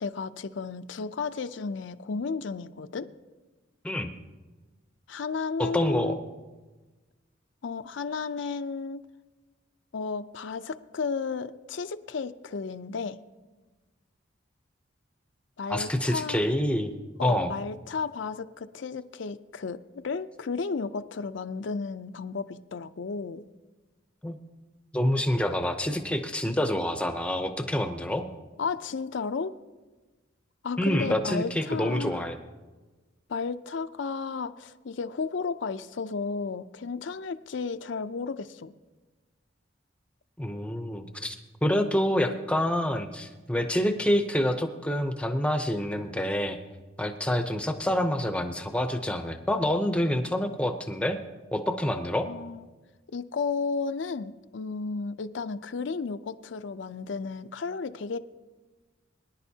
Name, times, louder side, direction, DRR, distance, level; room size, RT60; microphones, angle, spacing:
voice 1, 0.0-3.1 5.1-6.2 7.6-9.0 9.9-13.2 15.6-16.5 17.2-23.4 28.6-29.6 30.6-32.3 33.3-38.7 52.3-52.7 53.1-58.2, left 4 dB, 70° left, 10 dB, 0.5 m, -33 dB
voice 2, 5.6-6.2 15.7-16.9 17.2-17.5 24.2-24.4 24.9-28.3 30.8-32.4 40.4-41.4 41.6-46.6 47.0-51.2 51.5-52.3, left 1 dB, 5° left, 6 dB, 0.6 m, -27 dB
23.0 x 10.5 x 2.8 m, 1.2 s
head